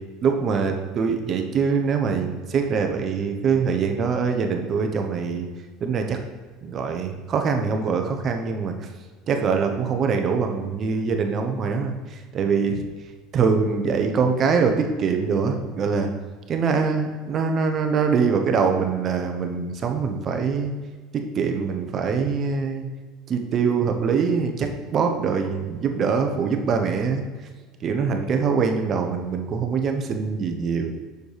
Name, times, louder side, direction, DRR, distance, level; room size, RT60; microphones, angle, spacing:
voice 1, 0.2-5.5 5.8-6.2 6.6-8.7 9.3-12.8 13.3-16.1 16.5-20.7 21.1-22.8 23.3-27.2 27.8-30.9, right 5 dB, 40° right, 4 dB, 1.0 m, -23 dB
6.9 x 6.5 x 3.4 m, 1.4 s
supercardioid pair, 95°, 0 cm